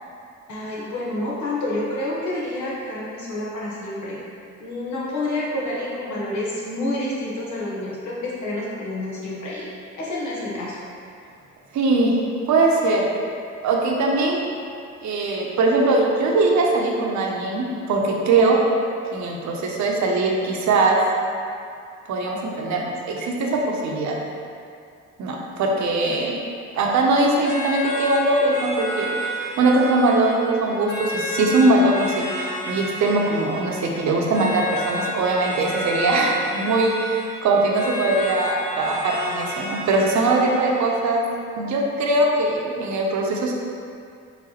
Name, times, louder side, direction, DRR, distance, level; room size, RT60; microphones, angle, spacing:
voice 1, 0.5-4.2 4.6-9.7 10.0-10.8, left 1 dB, 70° left, -5 dB, 1.1 m, -28 dB
voice 2, 11.7-12.2 12.5-13.0 13.6-14.6 15.0-18.6 19.1-21.0 22.1-24.2 25.2-26.4 26.7-41.2 41.6-43.5, right 2 dB, 70° right, -1 dB, 0.7 m, -21 dB
sound 1, 27.4-41.0, equal, 40° left, 1.4 m, -31 dB
4.8 x 3.3 x 3.0 m, 2.4 s
cardioid pair, 90°, 30 cm